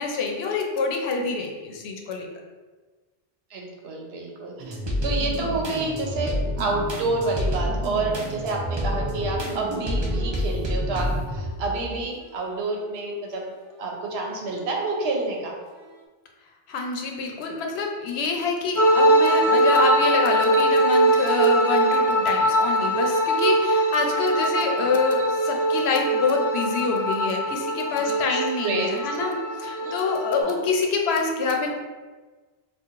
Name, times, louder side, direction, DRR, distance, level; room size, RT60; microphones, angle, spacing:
voice 1, 0.0-2.3 16.7-31.8, left 4 dB, 90° left, 1 dB, 0.8 m, -26 dB
voice 2, 3.5-13.4 13.8-15.5 24.7-24.9 27.9-29.2 29.8-30.1 30.4-30.6, right 2 dB, 90° right, 0 dB, 0.9 m, -29 dB
sound 1, 4.6-12.0 12.5-13.4 14.0-14.2 14.5-15.5, equal, 40° right, 0.4 m, -29 dB
sound 2, 18.8-30.4, right 1 dB, 25° left, 0.4 m, -22 dB
4.5 x 2.3 x 2.4 m, 1.3 s
omnidirectional pair, 1.0 m